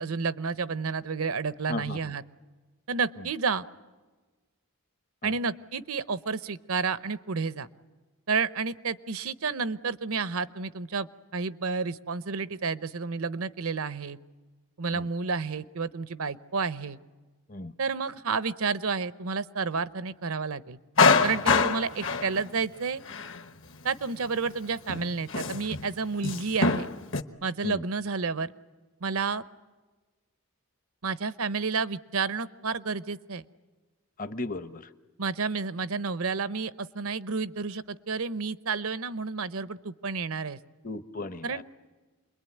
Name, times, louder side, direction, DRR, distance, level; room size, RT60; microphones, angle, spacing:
voice 1, 0.0-2.2 2.9-3.6 5.2-7.7 8.3-14.2 14.8-17.0 17.8-20.8 21.2-23.0 23.8-26.9 27.4-28.5 29.0-29.4 31.0-33.4 35.2-40.6 41.4-41.6, right 5 dB, 75° right, 15 dB, 0.8 m, -30 dB
voice 2, 1.7-2.0 5.2-5.3 14.9-15.1 17.5-17.7 27.6-27.8 34.2-34.9 40.8-41.6, left 2 dB, 35° left, 12 dB, 0.8 m, -35 dB
Male speech man speaking, 21.0-22.5 23.1-23.4 24.5-24.6 24.9-25.9 26.2-27.2, left 4 dB, 55° left, 1.1 m, -24 dB
28.0 x 22.0 x 9.4 m, 1.3 s
head